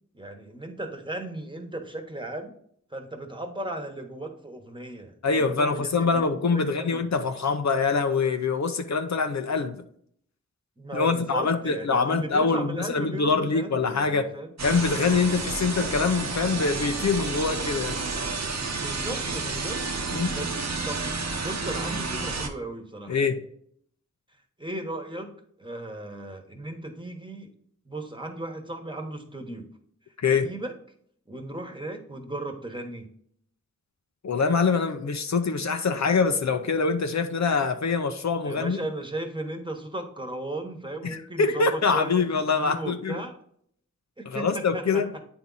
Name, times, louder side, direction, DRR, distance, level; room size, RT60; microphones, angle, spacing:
voice 1, 0.1-2.5 2.9-6.2 6.5-7.1 10.8-14.5 18.7-19.8 20.3-20.5 20.8-21.0 21.4-23.2 24.6-25.3 25.6-27.5 27.8-29.7 30.3-30.7 31.3-33.1 38.4-43.3 44.2-45.0, right 1 dB, 15° right, 1.2 m, -36 dB
voice 2, 5.2-9.8 10.9-14.3 14.6-18.0 20.1-20.3 23.1-23.4 30.2-30.5 34.2-38.8 41.0-43.2 44.3-45.1, left 4 dB, 70° left, 0.7 m, -24 dB
sound 1, 14.6-22.5, right 4 dB, 65° right, 0.9 m, -30 dB
8.7 x 3.5 x 4.0 m
wide cardioid pair, 50°, 29 cm